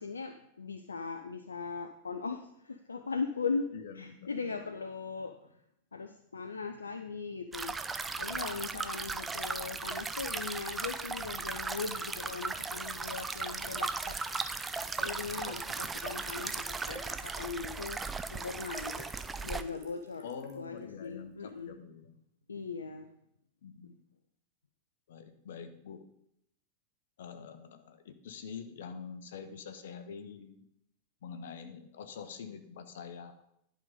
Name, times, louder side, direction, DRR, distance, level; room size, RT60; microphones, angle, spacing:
voice 1, 0.0-3.7 3.9-5.4 5.9-7.8 8.2-14.2 15.0-18.0 18.3-19.1 19.4-20.2 20.6-21.8 22.5-23.1 23.8-23.9, left 4 dB, 75° left, 7 dB, 0.5 m, -39 dB
voice 2, 3.7-4.5 9.0-9.1 20.2-22.1 23.6-24.0 25.1-26.0 27.2-30.6 31.2-33.4, left 6 dB, 60° left, 8 dB, 0.9 m, -45 dB
sound 1, 7.5-19.6, right 4 dB, 15° right, 0.5 m, -37 dB
Trickle dribble / Fill (with liquid), 12.9-21.7, right 5 dB, 35° right, 1.5 m, -61 dB
11.0 x 5.0 x 5.2 m, 0.76 s
figure-of-eight pair, 90°, 0 cm